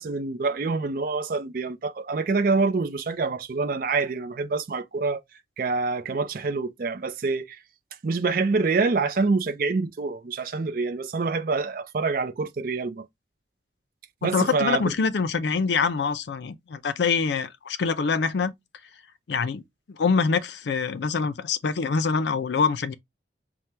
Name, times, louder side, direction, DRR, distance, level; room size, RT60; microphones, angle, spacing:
voice 1, 0.0-5.2 5.6-7.6 8.0-13.1 14.2-14.9, right 4 dB, 50° right, 0.4 m, -26 dB
voice 2, 14.2-18.5 19.3-22.9, left 5 dB, 75° left, 0.4 m, -25 dB
5.7 x 2.1 x 3.2 m
head